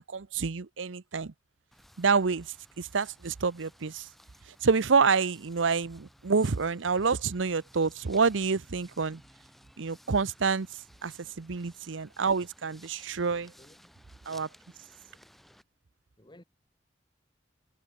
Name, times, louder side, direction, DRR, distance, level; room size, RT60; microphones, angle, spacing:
voice 1, 0.0-1.3 2.0-2.5 2.8-4.1 4.6-9.2 9.8-10.7 11.0-13.5 14.3-14.5, right 5 dB, 80° right, 0.8 m, -27 dB
sound 1, 1.7-15.6, equal, ahead, 4.3 m, -58 dB
voice 2, 11.2-11.6 13.3-13.9 16.2-16.4, left 1 dB, 25° left, 4.1 m, -58 dB
head